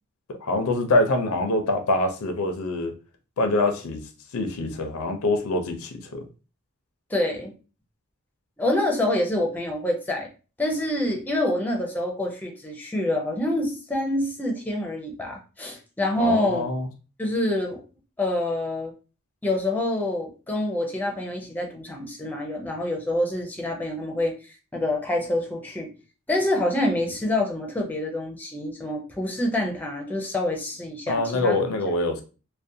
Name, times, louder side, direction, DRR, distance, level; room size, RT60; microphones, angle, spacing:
voice 1, 0.3-2.9 3.4-4.1 4.3-6.2 16.2-16.9 31.1-32.2, left 2 dB, 85° left, 5 dB, 0.5 m, -24 dB
voice 2, 7.1-7.5 8.6-10.3 10.6-16.6 17.2-17.8 18.2-18.9 19.4-24.3 24.7-25.9 26.3-31.6, left 1 dB, 10° left, 1 dB, 0.4 m, -26 dB
2.5 x 2.1 x 2.6 m, 0.34 s
head